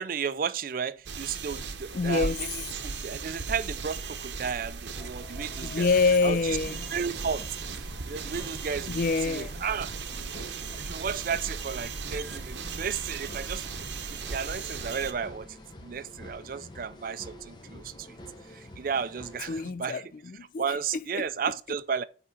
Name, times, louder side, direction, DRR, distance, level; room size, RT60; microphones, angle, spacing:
voice 1, 0.0-5.9 6.2-6.6 6.9-7.5 8.1-9.9 10.8-13.7 14.1-15.5 15.8-18.2 18.8-20.0 20.6-22.0, right 6 dB, 50° right, 0.4 m, -33 dB
sound 1, 1.1-15.1, right 4 dB, 70° right, 0.8 m, -37 dB
voice 2, 1.9-2.4 5.6-6.9 8.9-9.6 19.5-21.3, left 4 dB, 45° left, 0.3 m, -27 dB
sound 2, 4.9-19.7, left 1 dB, 25° left, 0.9 m, -47 dB
8.5 x 3.6 x 4.1 m
head